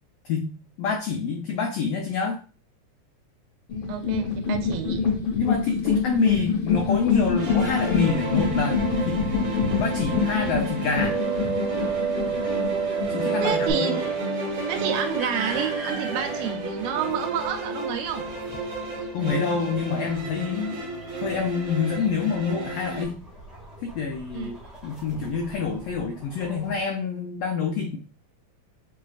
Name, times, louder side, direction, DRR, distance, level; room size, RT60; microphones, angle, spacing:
voice 1, 0.8-2.4 5.3-8.8 9.1-9.2 9.8-11.2 13.1-13.9 19.1-20.8 21.2-23.2 23.8-24.6 24.8-28.0, left 5 dB, 85° left, 3 dB, 1.4 m, -27 dB
sound 1, 3.7-13.7, left 5 dB, 65° left, 1.2 m, -26 dB
voice 2, 3.9-5.1 13.4-14.2 14.7-18.3 24.3-24.6, right 8 dB, 80° right, 6 dB, 1.8 m, -29 dB
sound 2, 7.4-23.0, right 4 dB, 45° right, 1.4 m, -30 dB
sound 3, 14.4-26.8, right 2 dB, ahead, 0.5 m, -42 dB
6.1 x 3.2 x 2.4 m, 0.38 s
omnidirectional pair, 3.5 m